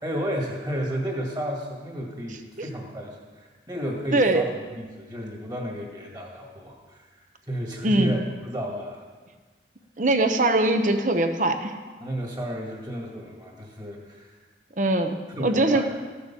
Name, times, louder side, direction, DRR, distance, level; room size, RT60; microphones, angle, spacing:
voice 1, 0.0-9.1 12.0-14.4 15.3-16.0, equal, 20° right, 0 dB, 2.0 m, -32 dB
voice 2, 4.1-4.4 7.8-8.1 10.0-11.7 14.8-15.9, right 2 dB, 45° right, 7 dB, 0.9 m, -22 dB
14.0 x 6.8 x 7.0 m, 1.4 s
head